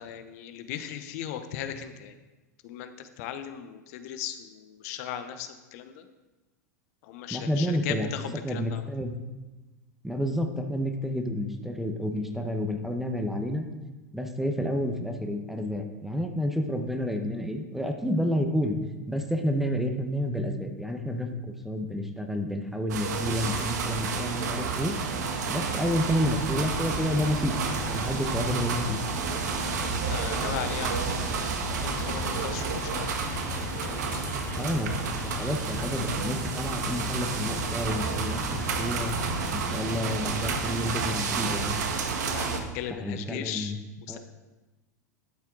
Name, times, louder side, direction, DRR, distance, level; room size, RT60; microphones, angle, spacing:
voice 1, 0.0-2.1 2.6-6.1 7.0-8.9 29.8-33.3 33.7-34.4 42.2-43.7 44.1-44.2, left 9 dB, 60° left, 9 dB, 0.9 m, -38 dB
voice 2, 7.3-8.1 8.4-9.1 10.0-13.7 14.1-18.8 19.1-21.3 21.6-25.0 25.5-27.6 27.9-29.0 34.6-34.9 35.2-39.2 39.5-41.8 43.0-43.8 44.1-44.2, equal, 5° right, 4 dB, 1.2 m, -30 dB
sound 1, 22.9-42.6, right 5 dB, 70° right, 1.5 m, -31 dB
sound 2, 26.1-41.1, left 5 dB, 20° left, 0.8 m, -38 dB
11.5 x 7.2 x 4.0 m, 1.1 s
hypercardioid pair, 95°, 9 cm